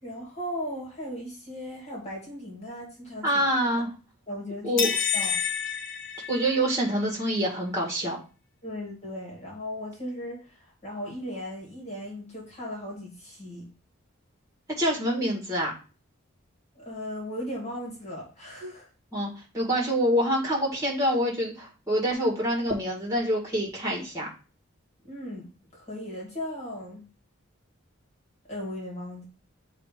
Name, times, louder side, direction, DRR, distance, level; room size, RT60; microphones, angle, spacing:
voice 1, 0.0-3.3 4.3-4.9 5.1-5.3 8.6-13.7 16.8-18.9 25.0-27.0 28.5-29.3, left 1 dB, 30° left, -3 dB, 2.3 m, -37 dB
voice 2, 3.2-3.9 4.6-4.9 6.3-8.2 14.8-15.7 19.1-24.3, equal, 15° right, -2 dB, 1.8 m, -26 dB
sound 1, 4.8-6.9, left 7 dB, 55° left, 0.9 m, -29 dB
7.5 x 2.8 x 5.0 m, 0.35 s
head